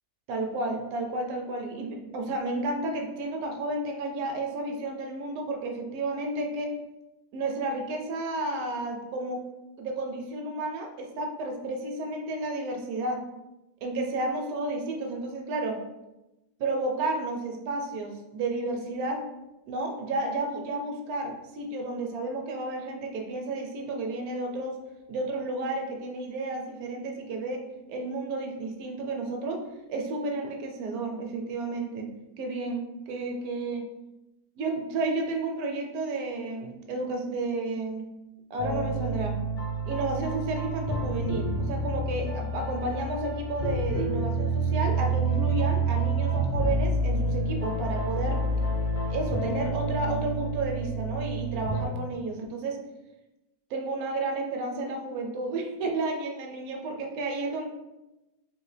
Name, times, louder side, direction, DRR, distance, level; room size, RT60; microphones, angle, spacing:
voice 1, 0.3-6.8 7.3-9.4 9.8-13.2 13.8-15.8 16.6-19.2 19.7-24.8 25.1-27.6 27.9-29.6 29.9-32.1 32.4-33.9 34.6-38.1 38.5-39.4 39.9-48.4 49.1-52.8 53.7-57.7, right 2 dB, 75° right, 3 dB, 1.0 m, -32 dB
sound 1, 38.6-51.9, right 2 dB, 45° left, 0.4 m, -28 dB
3.5 x 2.5 x 3.1 m, 0.98 s
omnidirectional pair, 1.7 m